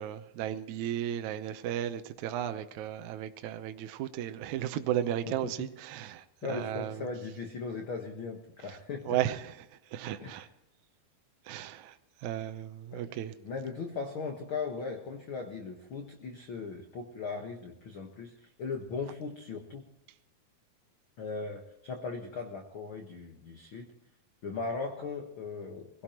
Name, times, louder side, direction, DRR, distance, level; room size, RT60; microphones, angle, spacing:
voice 1, 0.0-7.1 9.1-9.5 9.9-10.5 11.5-12.0 12.2-13.3, right 11 dB, 70° right, 1.9 m, -34 dB
voice 2, 6.4-9.2 10.2-10.5 12.9-19.9 21.2-23.9 24.4-26.0, left 4 dB, 55° left, 1.5 m, -38 dB
22.5 x 17.5 x 3.0 m
omnidirectional pair, 4.2 m